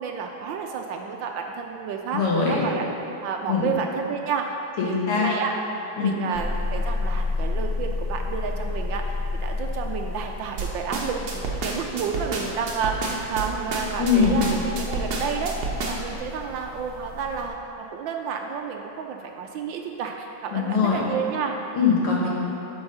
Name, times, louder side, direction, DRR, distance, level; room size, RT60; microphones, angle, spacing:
voice 1, 0.0-2.9 3.2-4.6 4.8-5.6 6.0-21.6, right 6 dB, 75° right, 3 dB, 1.2 m, -31 dB
voice 2, 2.1-2.6 3.5-3.6 4.8-5.3 6.0-6.1 14.0-14.4 20.5-21.0 21.7-22.3, left 6 dB, 80° left, -4 dB, 2.6 m, -21 dB
sound 1, 6.3-17.5, left 3 dB, 40° left, 1.2 m, -31 dB
sound 2, 10.6-16.2, right 4 dB, 55° right, 1.3 m, -30 dB
12.0 x 4.8 x 5.5 m, 2.9 s
omnidirectional pair, 2.4 m